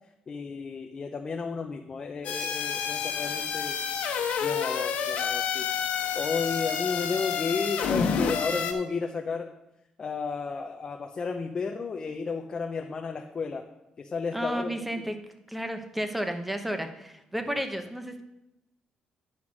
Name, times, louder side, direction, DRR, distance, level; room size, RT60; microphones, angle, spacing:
voice 1, 0.3-3.8 4.4-5.7 6.1-9.5 10.0-13.7 14.0-15.0, left 5 dB, 30° left, 3 dB, 0.7 m, -33 dB
sound 1, 2.2-8.7, left 7 dB, 85° left, 1.2 m, -29 dB
voice 2, 14.3-15.1 15.5-18.2, equal, 5° right, 7 dB, 0.9 m, -32 dB
9.6 x 5.7 x 6.2 m, 0.88 s
cardioid pair, 150°, 2 cm